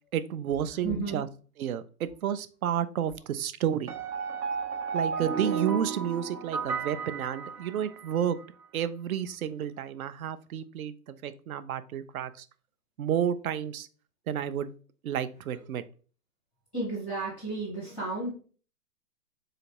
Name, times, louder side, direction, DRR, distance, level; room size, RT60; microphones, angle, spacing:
voice 1, 0.1-1.3 1.6-3.9 4.9-8.4 8.7-12.5 13.0-13.9 14.3-14.7 15.0-15.8, right 9 dB, 65° right, 14 dB, 0.5 m, -31 dB
voice 2, 0.8-1.2 16.7-18.3, right 3 dB, ahead, -6 dB, 0.6 m, -32 dB
sound 1, 3.9-8.2, right 6 dB, 85° right, 0.9 m, -33 dB
3.9 x 3.3 x 2.8 m, 0.39 s
hypercardioid pair, 160°, 46 cm